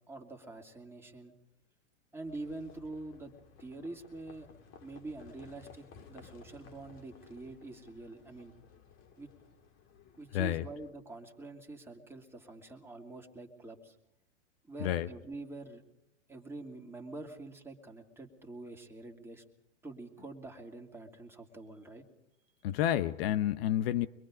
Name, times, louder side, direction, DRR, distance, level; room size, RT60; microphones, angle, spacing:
voice 1, 0.1-1.3 2.1-3.3 3.6-4.5 4.8-8.5 9.2-9.3 10.2-14.0 14.6-15.8 16.3-19.4 19.8-22.0, right 2 dB, 5° right, 1 dB, 2.8 m, -46 dB
Livestock farm animals working animals, 2.2-10.9, left 5 dB, 35° left, 2.6 m, -57 dB
voice 2, 22.6-24.1, left 11 dB, 50° left, 14 dB, 0.8 m, -29 dB
25.0 x 22.5 x 5.1 m, 0.83 s
hypercardioid pair, 115°, 37 cm